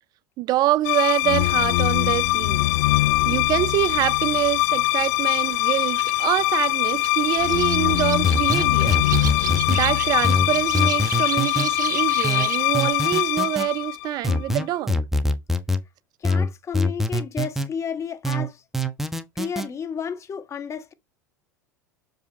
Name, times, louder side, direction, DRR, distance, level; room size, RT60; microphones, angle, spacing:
voice 1, 0.4-2.7 3.2-9.0 9.7-15.0, right 15 dB, 45° right, 0.5 m, -25 dB
sound 1, 0.8-14.5, left 20 dB, 60° left, 0.4 m, -22 dB
sound 2, 5.3-12.7, right 8 dB, 85° right, 0.7 m, -35 dB
sound 3, 8.2-9.8 10.2-11.7 12.2-13.7 14.2-15.8 16.2-17.7 18.2-19.7, left 1 dB, 5° right, 1.1 m, -24 dB
voice 2, 16.2-18.6 19.4-20.9, left 7 dB, 30° left, 1.3 m, -32 dB
6.9 x 5.5 x 4.1 m
hypercardioid pair, 80°, 10 cm